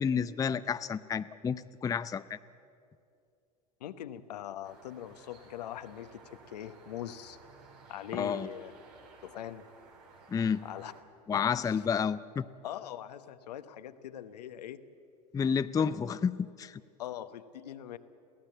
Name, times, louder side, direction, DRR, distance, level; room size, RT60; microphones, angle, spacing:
voice 1, 0.0-2.4 8.2-8.5 10.3-10.7 11.3-12.4 15.3-16.8, left 6 dB, 15° left, 14 dB, 0.5 m, -30 dB
voice 2, 3.8-7.4 7.9-8.7 9.2-9.6 10.6-10.9 11.3-11.9 12.6-14.8 15.8-16.0 17.0-18.0, left 11 dB, 75° left, 11 dB, 1.0 m, -42 dB
sound 1, 4.6-11.0, right 4 dB, 75° right, 3.6 m, -56 dB
23.0 x 16.0 x 7.9 m, 2.5 s
hypercardioid pair, 85°, 21 cm